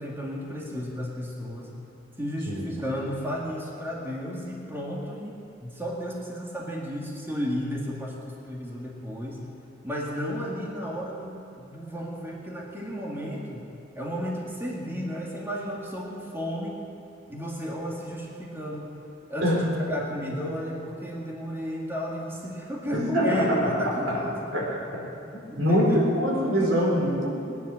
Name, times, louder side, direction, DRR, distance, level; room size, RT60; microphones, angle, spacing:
voice 1, 0.0-1.7 2.2-5.3 5.6-9.4 9.8-13.7 14.0-16.8 17.3-18.9 19.3-24.4 25.5-26.0, equal, 15° right, -3 dB, 2.1 m, -33 dB
voice 2, 22.9-23.8 24.1-24.2 24.5-24.8 25.3-27.4, equal, 80° right, -3 dB, 4.0 m, -24 dB
20.5 x 10.5 x 6.5 m, 2.7 s
head